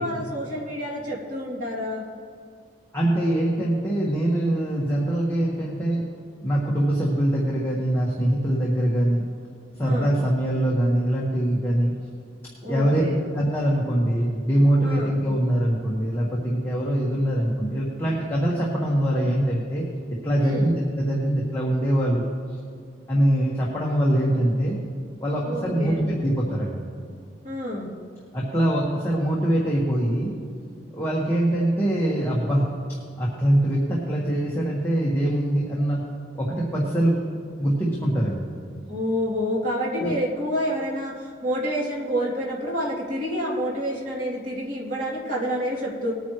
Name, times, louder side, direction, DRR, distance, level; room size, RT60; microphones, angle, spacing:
voice 1, 0.0-2.0 9.8-10.1 12.6-13.2 14.8-15.1 20.4-20.7 25.4-26.0 27.4-27.9 38.9-46.1, equal, 45° right, -5 dB, 3.0 m, -28 dB
voice 2, 2.9-6.0 6.4-9.2 9.8-11.9 12.7-13.0 13.3-19.8 20.2-22.2 23.1-24.8 25.2-26.7 28.3-30.3 30.9-32.7 33.2-36.0 36.3-37.2 37.6-38.4 40.0-40.2, right 1 dB, 15° left, -5 dB, 1.5 m, -23 dB
20.0 x 9.4 x 3.2 m, 2.2 s
head